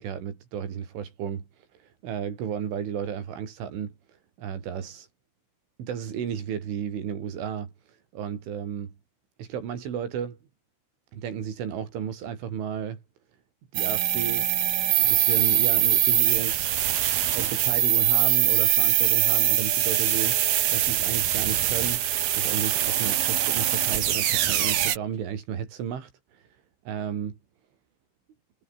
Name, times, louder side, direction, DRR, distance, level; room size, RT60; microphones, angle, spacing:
voice 1, 0.0-3.9 4.4-5.1 5.8-8.9 9.4-10.4 11.1-13.0 13.7-14.5 15.0-16.7 17.3-20.4 20.7-26.5 26.9-27.4, right 8 dB, 85° right, 6.4 m, -33 dB
sound 1, 13.7-25.0, right 11 dB, 60° right, 3.2 m, -23 dB
omnidirectional pair, 5.4 m